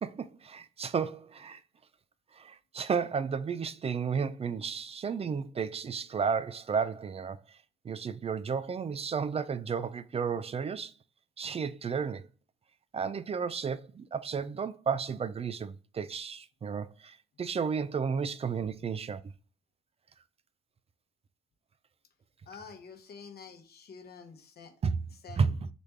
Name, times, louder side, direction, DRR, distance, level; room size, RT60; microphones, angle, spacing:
voice 1, 0.0-1.6 2.4-7.4 7.8-10.9 11.4-12.3 12.9-19.2 24.8-25.0 25.3-25.7, right 6 dB, 30° right, 0.4 m, -32 dB
voice 2, 22.5-24.7 25.2-25.5, left 5 dB, 55° left, 0.9 m, -48 dB
4.1 x 3.3 x 3.3 m
cardioid pair, 90°, 20 cm